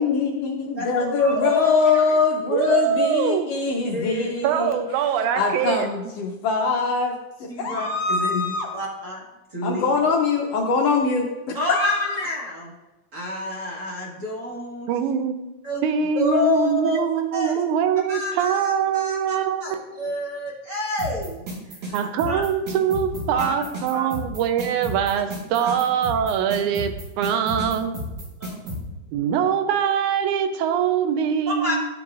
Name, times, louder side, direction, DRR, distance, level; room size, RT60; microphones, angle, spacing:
voice 1, 0.0-4.8 5.3-7.1 7.6-8.7 9.6-12.2, left 4 dB, 75° left, 0 dB, 1.5 m, -23 dB
voice 2, 0.7-1.8 3.9-4.3 7.5-8.3 8.7-9.2 9.5-9.9 11.5-12.7 13.1-14.9 15.6-15.8 16.1-17.0 17.3-17.6 18.1-19.4 19.6-21.4 22.3-22.4 23.3-24.1 25.6-25.7 27.3-27.4 28.4-28.6 31.5-31.8, left 2 dB, 40° right, -4 dB, 1.2 m, -28 dB
voice 3, 2.5-3.5 4.4-5.9 14.9-15.4 15.8-19.8 21.9-28.0 29.1-31.8, right 8 dB, 90° right, 8 dB, 2.1 m, -23 dB
sound 1, 21.0-28.8, equal, 65° right, 2.7 m, -32 dB
12.5 x 4.8 x 2.4 m, 1.0 s
omnidirectional pair, 3.4 m